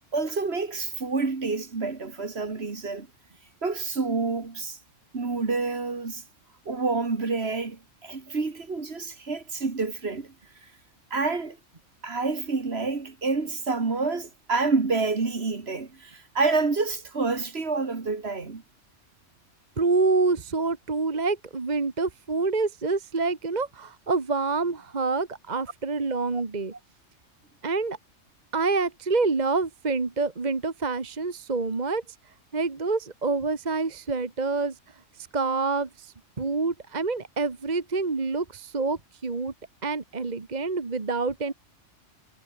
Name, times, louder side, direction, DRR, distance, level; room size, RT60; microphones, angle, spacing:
voice 1, 0.1-3.1 3.6-4.8 5.1-6.2 6.7-10.3 11.1-11.6 12.0-18.6 26.3-26.4, right 4 dB, 55° right, 2.3 m, -28 dB
voice 2, 19.8-26.8 27.6-28.0 28.5-32.0 32.5-34.7 35.3-39.5 39.8-41.5, right 3 dB, 35° right, 1.6 m, -27 dB
omnidirectional pair, 1.3 m